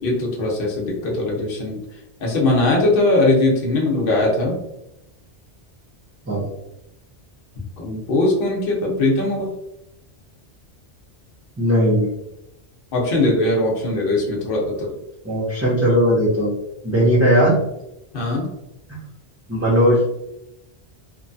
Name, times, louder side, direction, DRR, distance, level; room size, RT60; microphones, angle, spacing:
voice 1, 0.0-1.8 2.2-4.6 7.8-9.5 12.9-14.9 18.1-18.5, left 2 dB, 60° left, -2 dB, 0.9 m, -20 dB
voice 2, 11.6-12.1 15.2-16.5 16.8-17.6 19.5-20.1, equal, 20° right, -8 dB, 0.5 m, -17 dB
2.9 x 2.2 x 2.6 m, 0.86 s
omnidirectional pair, 1.1 m